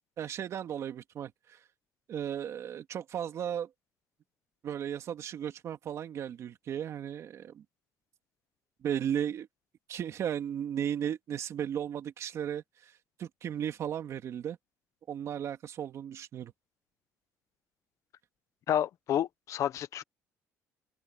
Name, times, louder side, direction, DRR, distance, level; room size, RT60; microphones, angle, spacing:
voice 1, 0.2-1.6 2.1-3.7 4.6-7.6 8.8-9.5 9.9-12.9 13.2-14.6 15.1-16.5, right 9 dB, 55° right, 2.3 m, -35 dB
voice 2, 18.7-20.0, left 10 dB, 60° left, 1.2 m, -30 dB
open air
cardioid pair, 115°, 6 cm